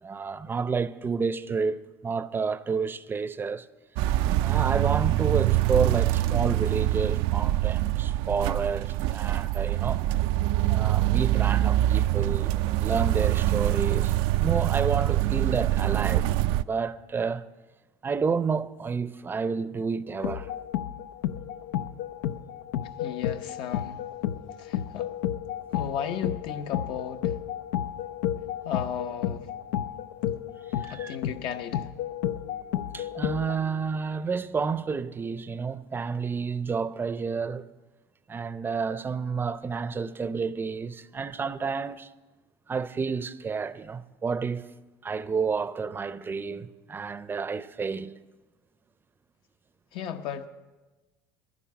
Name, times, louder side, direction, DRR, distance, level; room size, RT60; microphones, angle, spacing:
voice 1, 0.0-3.7 4.4-10.0 10.7-12.5 12.8-14.1 14.4-17.4 18.0-20.5 30.8-31.2 32.9-37.7 38.3-42.1 42.7-44.7 45.0-48.1, right 5 dB, 25° right, 0.5 m, -30 dB
sound 1, 4.0-16.6, right 15 dB, 70° right, 0.4 m, -24 dB
sound 2, 20.2-33.6, left 11 dB, 85° left, 0.5 m, -32 dB
voice 2, 23.0-24.0 24.6-25.1 25.7-27.4 28.6-29.5 30.9-31.9 49.9-50.5, left 8 dB, 65° left, 0.9 m, -35 dB
11.0 x 10.5 x 7.3 m
supercardioid pair, 95°, 9 cm